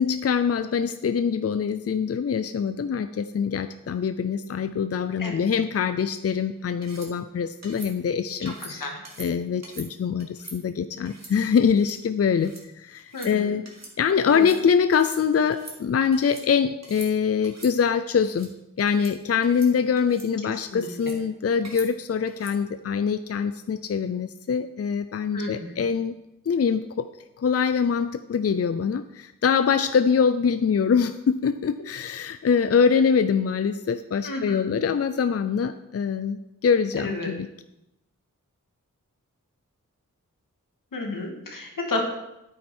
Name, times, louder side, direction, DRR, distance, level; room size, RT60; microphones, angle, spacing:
voice 1, 0.0-8.9 9.2-13.6 14.0-18.5 18.8-26.2 26.5-27.1 27.4-37.5, left 6 dB, 50° left, 10 dB, 0.5 m, -24 dB
voice 2, 5.2-5.5 8.4-9.0 13.1-13.5 14.3-14.5 20.7-20.9 25.3-25.8 34.2-34.8 37.0-37.3 40.9-42.0, left 2 dB, 85° left, 1 dB, 2.1 m, -32 dB
sound 1, 6.8-7.1 7.6-7.9 8.5-8.7 9.0-9.3 9.6-9.9 10.2-10.6 11.0-11.3 11.7-12.0 12.3-12.6 13.0-13.3 13.6-13.9 14.2-14.6 14.9-15.2 15.5-16.4 16.8-17.1 17.4-17.7 18.2-18.5 18.9-19.1 19.4-19.7 20.0-20.3 20.8-21.2 21.6-21.9 22.3-22.6, right 2 dB, 55° right, 2.3 m, -44 dB
9.2 x 8.9 x 4.4 m, 0.88 s
wide cardioid pair, 65°, 32 cm